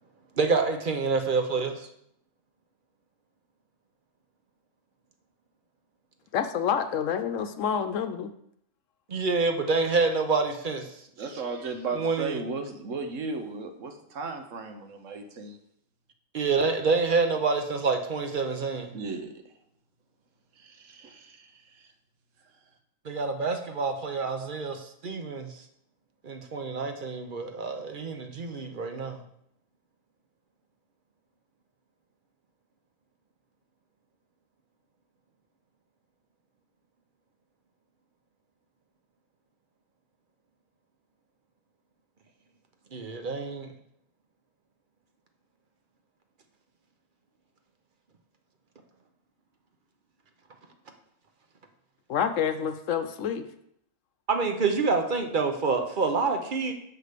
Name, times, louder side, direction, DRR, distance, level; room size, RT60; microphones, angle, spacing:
voice 1, 0.4-1.8 9.1-10.9 11.9-12.4 16.3-18.9 23.0-25.5 26.2-29.2 42.9-43.7 54.3-56.7, right 4 dB, 45° right, 6 dB, 0.9 m, -27 dB
voice 2, 6.3-8.3 52.1-53.5, left 8 dB, 75° left, 9 dB, 1.0 m, -28 dB
voice 3, 11.2-15.6 18.9-19.3 20.6-21.9, right 4 dB, 75° right, 6 dB, 1.3 m, -36 dB
6.6 x 5.0 x 6.6 m, 0.74 s
omnidirectional pair, 1.4 m